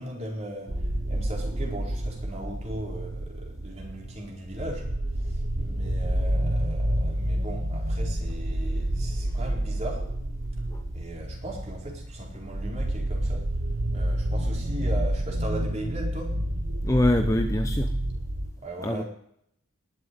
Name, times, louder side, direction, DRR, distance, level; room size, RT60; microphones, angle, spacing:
voice 1, 0.0-10.1 10.9-13.5 13.9-16.4 18.6-19.0, right 1 dB, 35° right, -1 dB, 4.4 m, -38 dB
sound 1, 0.7-18.5, right 1 dB, 70° right, 1.7 m, -29 dB
voice 2, 16.8-17.9 18.8-19.0, left 1 dB, 15° left, 6 dB, 0.7 m, -24 dB
19.0 x 7.7 x 9.5 m, 0.71 s
head